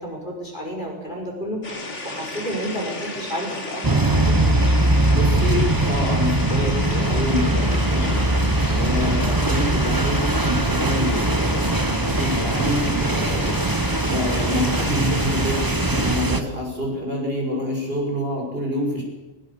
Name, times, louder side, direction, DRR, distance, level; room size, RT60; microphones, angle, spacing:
voice 1, 0.0-1.6 2.0-4.4, equal, 35° left, -1 dB, 5.2 m, -31 dB
sound 1, 1.6-16.2, left 2 dB, 60° left, 3.4 m, -33 dB
sound 2, 3.8-16.4, right 2 dB, 15° right, 1.0 m, -21 dB
voice 2, 5.1-8.2 8.7-13.7 14.1-19.0, left 1 dB, 45° right, 0 dB, 5.9 m, -27 dB
20.5 x 20.0 x 7.0 m, 1.1 s
omnidirectional pair, 1.4 m